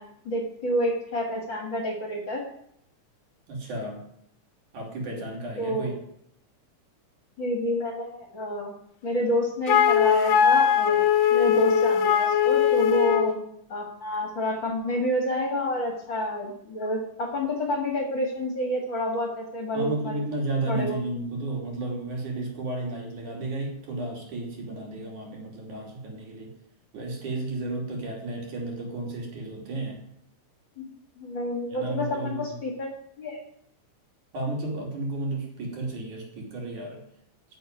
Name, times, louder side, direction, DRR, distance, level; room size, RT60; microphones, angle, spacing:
voice 1, 0.0-2.4 5.6-5.9 7.4-8.7 9.0-11.1 11.3-13.4 13.7-20.2 20.7-21.0 30.8-30.9 31.2-33.4, equal, 40° left, 1 dB, 2.3 m, -29 dB
voice 2, 3.5-4.0 4.7-5.9 19.7-26.5 26.9-30.1 31.7-32.6 34.3-37.0, right 2 dB, 65° right, 0 dB, 4.3 m, -33 dB
Wind instrument woodwind instrument, 9.7-13.4, left 8 dB, 65° left, 1.8 m, -20 dB
11.0 x 6.7 x 9.3 m, 0.72 s
omnidirectional pair, 3.9 m